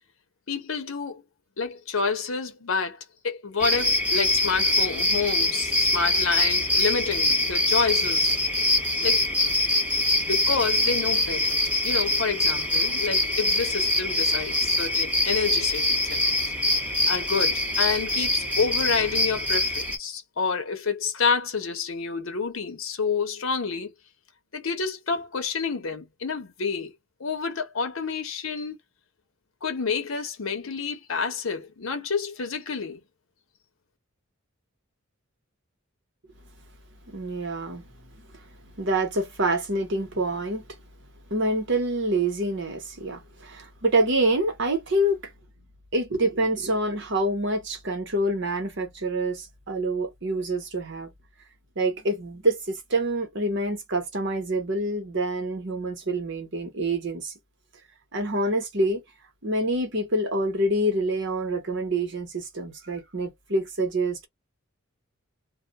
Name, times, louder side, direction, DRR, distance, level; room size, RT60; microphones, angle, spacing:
voice 1, 0.5-1.2 1.6-8.4 9.0-9.2 10.3-11.6 11.8-16.5 17.1-23.9 24.5-26.9 27.2-28.8 29.6-33.0, left 5 dB, 75° left, 0.8 m, -29 dB
sound 1, 3.6-20.0, left 2 dB, 5° right, 0.9 m, -24 dB
voice 2, 37.1-37.9 38.3-38.4 38.8-40.6 41.3-45.2 45.9-51.1 51.8-57.3 58.1-59.0 59.4-64.3, right 1 dB, 60° right, 0.9 m, -26 dB
2.3 x 2.1 x 3.9 m
head